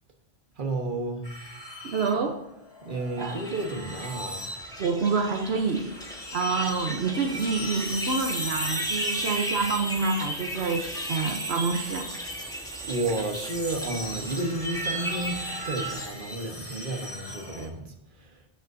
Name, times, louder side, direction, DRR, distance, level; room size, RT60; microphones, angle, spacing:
voice 1, 0.6-1.3 2.8-4.5 12.5-12.6 12.8-18.5, right 2 dB, 50° right, 4 dB, 1.4 m, -32 dB
sound 1, 1.2-17.7, right 1 dB, 25° left, 1.6 m, -38 dB
voice 2, 1.8-2.5 3.2-3.4 4.8-5.9 6.3-12.1, right 4 dB, 80° right, 4 dB, 1.1 m, -27 dB
sound 2, 3.2-16.1, equal, 5° left, 1.2 m, -36 dB
16.0 x 6.7 x 2.7 m, 0.85 s
omnidirectional pair, 1.1 m